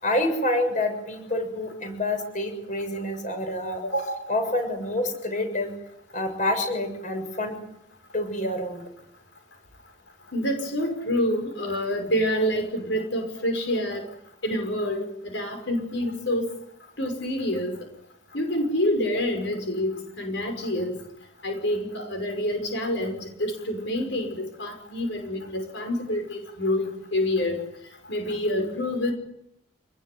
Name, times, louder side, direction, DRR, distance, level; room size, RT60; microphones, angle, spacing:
voice 1, 0.0-5.7 6.1-7.6 8.1-8.8, left 1 dB, 40° left, 6 dB, 7.1 m, -27 dB
voice 2, 10.3-14.1 14.4-16.4 17.0-17.8 18.3-20.9 21.4-27.6 28.1-29.1, left 1 dB, 70° left, 5 dB, 5.9 m, -27 dB
28.5 x 20.5 x 9.5 m, 0.80 s
head